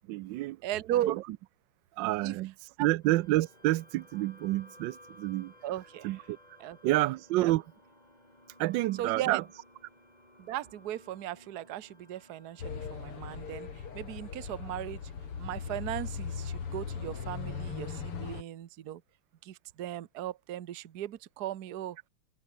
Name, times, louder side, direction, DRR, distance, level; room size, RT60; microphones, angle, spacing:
voice 1, 0.1-0.6 1.0-1.2 1.9-5.5 6.0-6.4 6.8-7.6 8.6-9.4, right 17 dB, 75° right, 1.1 m, -29 dB
voice 2, 0.6-1.2 2.2-2.3 2.8-2.9 5.6-6.1 6.6-6.8 7.4-7.5 9.0-9.4 10.4-13.7 13.9-15.1 15.4-19.0 19.4-22.0, right 13 dB, 55° right, 1.3 m, -36 dB
sound 1, 3.0-17.8, left 1 dB, 15° left, 7.7 m, -58 dB
sound 2, 12.6-18.4, left 6 dB, 85° left, 3.5 m, -39 dB
omnidirectional pair, 2.4 m